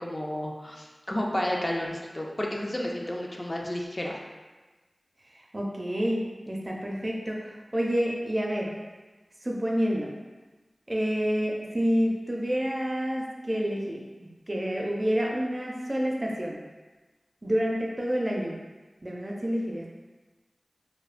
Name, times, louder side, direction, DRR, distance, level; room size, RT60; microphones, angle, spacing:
voice 1, 0.0-4.2, left 1 dB, 35° left, -1 dB, 0.3 m, -31 dB
voice 2, 5.3-8.7 9.4-10.1 10.9-16.6 17.4-18.6 19.0-19.9, equal, 35° right, -2 dB, 0.4 m, -28 dB
2.5 x 2.1 x 2.4 m, 1.2 s
cardioid pair, 40°, 0 cm